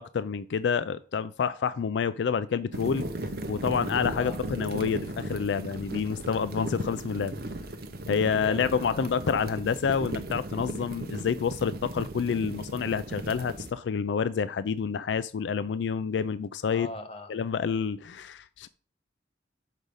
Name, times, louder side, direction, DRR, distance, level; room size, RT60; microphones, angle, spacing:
voice 1, 0.0-3.1 3.5-7.3 8.1-16.9 17.3-18.7, left 6 dB, 85° left, 0.4 m, -28 dB
sound 1, 2.7-13.7, right 1 dB, 60° right, 0.9 m, -36 dB
voice 2, 8.3-9.1 16.7-17.3, left 1 dB, 35° left, 1.1 m, -40 dB
6.4 x 5.1 x 5.4 m
head